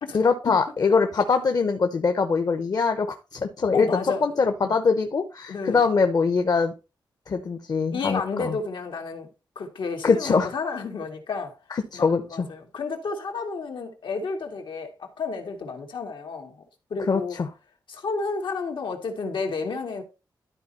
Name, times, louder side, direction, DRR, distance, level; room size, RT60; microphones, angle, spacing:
voice 1, 0.1-6.7 7.3-8.6 10.0-10.5 11.7-12.5 17.1-17.5, left 5 dB, 50° left, 0.9 m, -23 dB
voice 2, 3.7-4.3 4.6-4.7 5.5-5.8 7.9-9.3 9.6-11.6 11.9-16.6 16.9-17.4 17.9-20.0, left 4 dB, 85° left, 2.3 m, -31 dB
12.5 x 4.5 x 4.2 m
wide cardioid pair, 145°, 8 cm